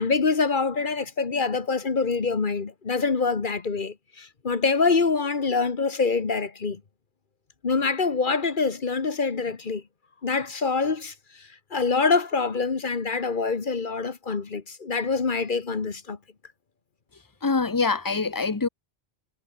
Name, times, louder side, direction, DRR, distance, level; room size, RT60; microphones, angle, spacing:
voice 1, 0.0-6.8 7.6-9.8 10.2-16.2, left 4 dB, 50° left, 1.5 m, -25 dB
voice 2, 17.4-18.7, left 4 dB, 20° left, 0.9 m, -24 dB
omnidirectional pair, 1.1 m